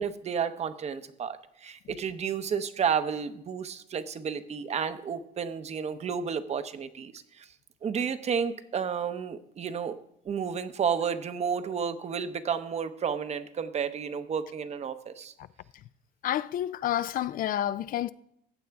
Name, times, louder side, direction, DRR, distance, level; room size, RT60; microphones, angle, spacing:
voice 1, 0.0-7.5 7.8-10.0 10.2-15.3, right 7 dB, 40° right, 0.8 m, -31 dB
voice 2, 16.2-18.1, left 11 dB, 55° left, 0.4 m, -29 dB
15.0 x 8.3 x 3.5 m
cardioid pair, 110°, 17 cm